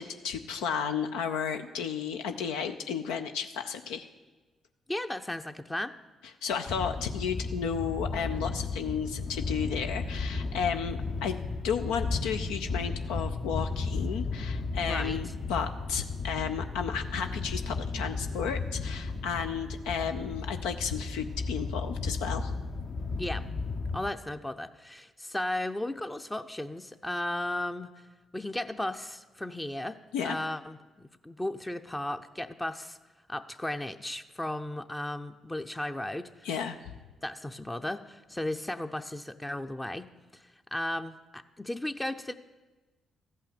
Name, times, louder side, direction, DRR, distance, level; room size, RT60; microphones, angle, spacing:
voice 1, 0.0-4.1 6.4-11.4 11.6-22.5 30.1-30.4 36.4-36.8, left 7 dB, 80° left, 7 dB, 0.5 m, -33 dB
voice 2, 4.9-6.0 14.9-15.2 23.2-23.4 23.9-27.9 28.3-30.0 30.2-30.8 31.2-33.0 33.3-36.5 37.2-40.1 40.3-42.3, left 1 dB, 15° left, 7 dB, 0.6 m, -35 dB
sound 1, 6.7-24.0, left 3 dB, 55° left, 1.1 m, -34 dB
14.0 x 5.6 x 8.7 m, 1.2 s
hypercardioid pair, 45°, 0 cm